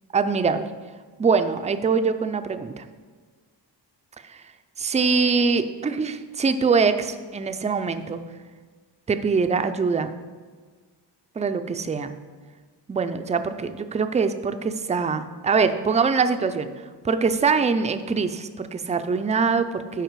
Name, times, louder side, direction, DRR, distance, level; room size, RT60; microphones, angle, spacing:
voice 1, 0.1-0.7 1.2-2.9 4.2-4.5 4.8-8.2 9.1-10.1 11.4-12.1 12.9-20.0, right 5 dB, 20° right, 9 dB, 0.3 m, -23 dB
11.5 x 4.8 x 4.6 m, 1.5 s
wide cardioid pair, 140°, 42 cm